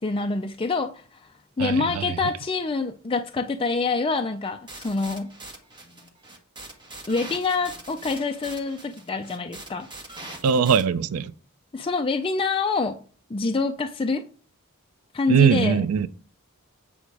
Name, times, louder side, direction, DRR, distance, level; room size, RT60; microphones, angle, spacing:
voice 1, 0.0-1.3 1.6-5.3 7.1-9.9 11.7-13.0 13.3-14.2 15.1-15.8, left 4 dB, 25° left, 0.4 m, -26 dB
voice 2, 1.6-2.2 10.4-11.3 15.3-16.1, right 6 dB, 90° right, 0.4 m, -21 dB
sound 1, 4.7-10.8, right 2 dB, 20° right, 1.5 m, -42 dB
8.5 x 5.1 x 4.7 m
head